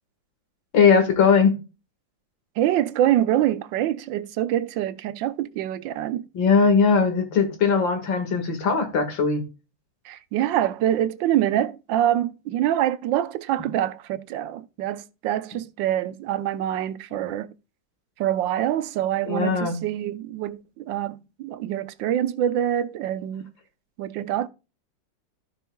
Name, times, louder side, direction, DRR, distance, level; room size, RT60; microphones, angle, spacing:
voice 1, 0.7-1.5 6.3-9.4 19.3-19.8, left 5 dB, 90° left, 2.5 m, -19 dB
voice 2, 2.6-6.2 10.0-17.5 18.2-23.5 24.0-24.5, right 11 dB, 85° right, 1.3 m, -25 dB
15.0 x 5.4 x 2.2 m
omnidirectional pair, 2.0 m